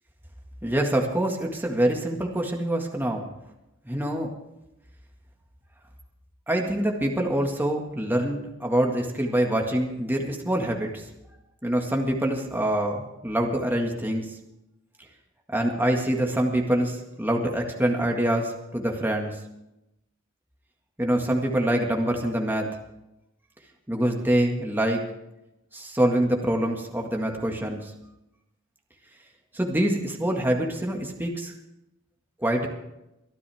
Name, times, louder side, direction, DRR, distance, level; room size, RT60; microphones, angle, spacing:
voice 1, 0.6-3.3 3.9-4.3 6.5-11.0 11.6-14.3 15.5-19.3 21.0-22.7 23.9-25.0 25.7-27.9 29.5-31.5 32.4-32.7, right 1 dB, 10° right, 1 dB, 1.9 m, -25 dB
23.5 x 12.5 x 3.6 m, 0.88 s
head